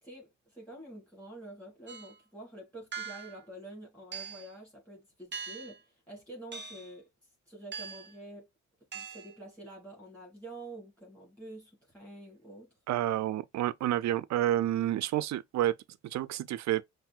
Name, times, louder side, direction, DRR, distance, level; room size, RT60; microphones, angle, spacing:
voice 1, 0.0-7.1 7.5-8.5 8.9-12.7, right 1 dB, 5° left, 2.7 m, -48 dB
sound 1, 1.9-2.2 2.9-3.4 4.1-4.5 5.3-5.8 6.5-6.9 7.7-8.2 8.9-9.3, right 6 dB, 35° right, 0.8 m, -42 dB
voice 2, 12.9-15.7 16.0-16.8, right 13 dB, 65° right, 0.5 m, -29 dB
5.8 x 2.6 x 2.4 m
cardioid pair, 90°, 30 cm